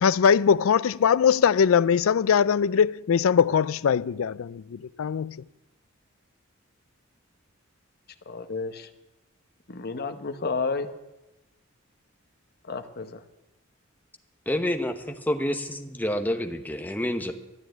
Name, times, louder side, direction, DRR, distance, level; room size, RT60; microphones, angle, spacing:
voice 1, 0.0-5.4, left 7 dB, 75° left, 0.4 m, -21 dB
voice 2, 8.3-8.9 9.7-10.9 12.7-13.2, left 4 dB, 50° left, 1.0 m, -31 dB
voice 3, 14.5-17.3, left 1 dB, 10° left, 1.0 m, -28 dB
13.0 x 9.4 x 9.0 m
head